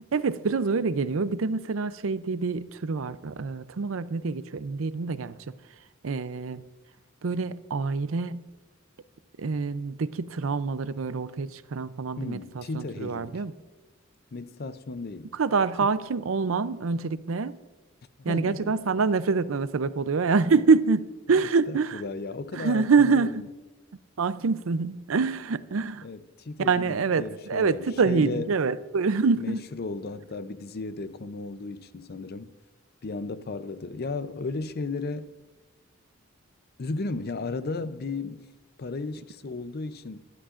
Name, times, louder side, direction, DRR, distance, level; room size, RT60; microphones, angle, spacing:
voice 1, 0.1-5.4 6.0-6.6 7.2-8.5 9.4-13.5 15.3-17.5 18.2-22.0 22.5-23.4 24.2-26.1 26.6-29.6, right 4 dB, 85° right, 0.5 m, -26 dB
voice 2, 12.2-13.4 14.3-15.3 18.3-18.8 21.7-23.4 26.0-28.5 29.4-32.5 33.0-35.3 36.8-38.4 38.8-40.2, left 3 dB, 50° left, 0.6 m, -35 dB
21.0 x 13.0 x 2.5 m
head